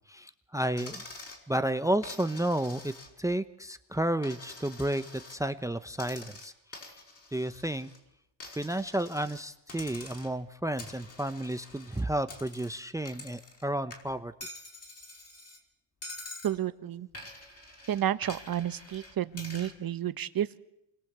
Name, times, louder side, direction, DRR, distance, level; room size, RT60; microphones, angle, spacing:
voice 1, 0.1-1.0 1.5-2.9 3.2-6.5 7.3-7.9 8.6-14.3, right 1 dB, 5° right, 12 dB, 0.9 m, -31 dB
Coin (dropping), 0.8-1.4 2.0-3.3 3.7-5.4 5.9-8.0 8.4-9.4 9.7-10.4 10.8-13.6 13.9-15.6 16.0-16.6 17.1-19.8, left 2 dB, 30° left, 5.2 m, -47 dB
voice 2, 16.4-17.1 17.9-20.6, right 11 dB, 45° right, 13 dB, 1.4 m, -31 dB
28.0 x 22.0 x 8.2 m, 0.80 s
cardioid pair, 120°, 49 cm